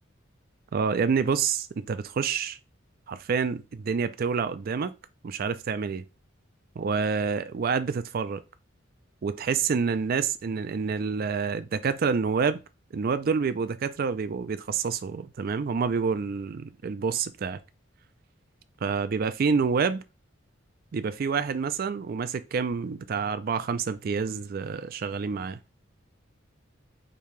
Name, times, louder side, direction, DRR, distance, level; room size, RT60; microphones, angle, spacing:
voice 1, 0.7-2.6 3.1-4.9 5.2-6.0 6.8-8.4 9.2-12.6 12.9-17.6 18.8-20.0 20.9-25.6, right 5 dB, 45° right, 0.3 m, -28 dB
5.2 x 2.8 x 3.2 m
head